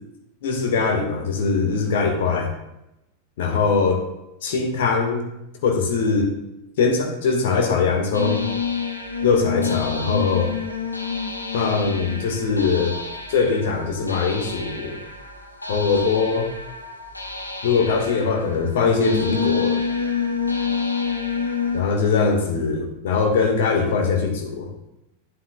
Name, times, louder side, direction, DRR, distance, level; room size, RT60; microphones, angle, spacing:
voice 1, 0.4-2.5 3.4-4.0 4.4-5.2 5.6-6.3 6.8-8.4 9.2-10.5 11.5-13.0 13.3-15.0 15.7-16.5 17.6-19.8 21.7-24.7, left 5 dB, 55° left, 2 dB, 1.5 m, -21 dB
sound 1, 8.1-21.8, left 5 dB, 85° left, 1.0 m, -28 dB
11.5 x 7.7 x 2.3 m, 0.87 s
figure-of-eight pair, 90°, 0 cm